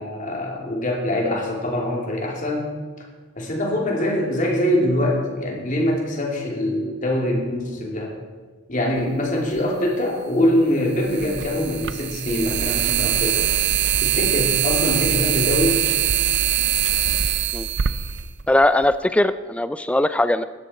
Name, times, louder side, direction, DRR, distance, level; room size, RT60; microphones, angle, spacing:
voice 1, 0.0-2.7 3.4-8.1 8.7-13.4 14.0-15.8, left 1 dB, 35° left, -1 dB, 2.8 m, -23 dB
sound 1, 9.6-9.7 11.0-18.9, right 10 dB, 55° right, 0.5 m, -22 dB
voice 2, 18.5-20.4, left 1 dB, 5° left, 12 dB, 0.3 m, -19 dB
16.0 x 12.5 x 4.3 m, 1.4 s
head